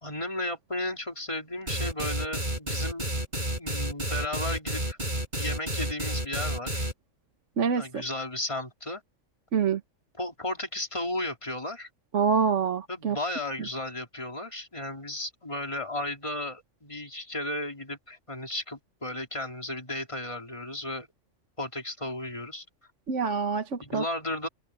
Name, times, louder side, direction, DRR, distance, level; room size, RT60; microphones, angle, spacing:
voice 1, 0.0-3.1 3.6-5.0 5.3-6.9 7.8-9.0 10.2-11.9 12.9-21.1 21.6-22.6 23.8-24.5, left 1 dB, 25° left, 3.8 m, -34 dB
sound 1, 1.7-6.9, right 1 dB, 35° right, 5.9 m, -30 dB
voice 2, 7.6-8.0 9.5-9.8 12.1-13.2 23.1-24.0, right 6 dB, 65° right, 1.5 m, -26 dB
omnidirectional pair, 1.4 m